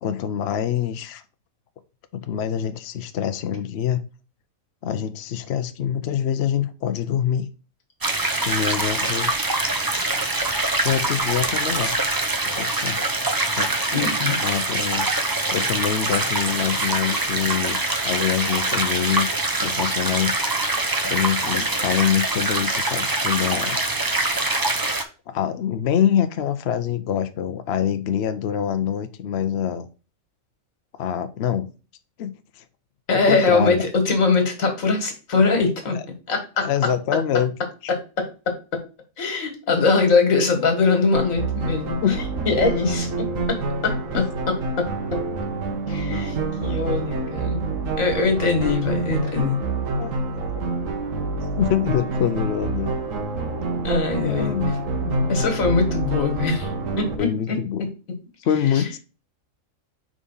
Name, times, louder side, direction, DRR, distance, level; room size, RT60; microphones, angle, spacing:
voice 1, 0.0-1.2 2.1-4.0 4.8-7.5 8.4-9.3 10.8-11.9 12.5-13.0 13.5-13.8 14.4-15.1 15.5-17.8 18.0-19.3 19.6-20.7 21.0-23.8 25.3-29.9 31.0-31.7 32.2-32.6 33.1-33.8 35.9-36.0 36.6-37.6 37.8-37.9 42.0-42.2 44.1-44.3 50.0-50.1 50.5-50.7 51.6-52.9 54.2-54.7 55.1-55.4 57.2-57.8 58.4-59.0, left 9 dB, 60° left, 0.8 m, -25 dB
sound 1, 8.0-25.0, right 2 dB, 30° right, 0.4 m, -24 dB
voice 2, 13.9-14.4 33.1-36.0 36.3-36.7 37.9-38.8 39.2-42.0 42.5-45.2 45.9-47.7 48.0-49.6 53.8-54.5 55.3-56.7 57.0-57.6 58.7-58.8, left 4 dB, 80° left, 1.9 m, -22 dB
sound 2, 41.1-57.2, right 3 dB, 75° right, 1.4 m, -27 dB
5.0 x 3.8 x 5.4 m
omnidirectional pair, 1.4 m